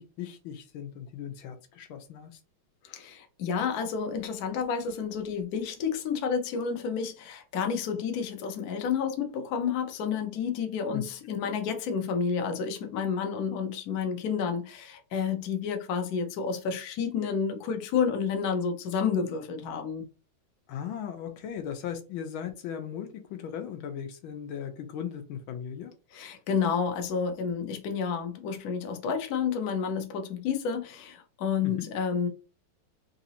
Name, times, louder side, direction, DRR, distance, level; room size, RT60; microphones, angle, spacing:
voice 1, 0.0-2.4 10.9-11.0 20.7-25.9 31.6-31.9, left 9 dB, 80° left, 1.4 m, -37 dB
voice 2, 2.8-20.1 26.1-32.3, left 6 dB, 60° left, 1.0 m, -30 dB
3.9 x 2.6 x 2.8 m
omnidirectional pair, 2.2 m